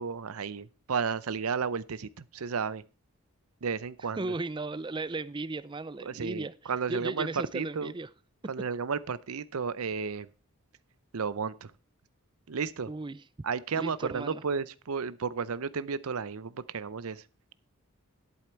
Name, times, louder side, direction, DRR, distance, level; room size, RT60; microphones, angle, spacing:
voice 1, 0.0-2.8 3.6-4.3 6.0-7.3 7.5-7.9 8.5-10.3 11.1-11.7 12.5-12.9 13.4-17.2, right 5 dB, 80° right, 0.6 m, -33 dB
voice 2, 4.2-8.1 12.9-13.2 13.7-14.4, right 2 dB, 20° right, 0.4 m, -36 dB
11.0 x 8.6 x 4.5 m
head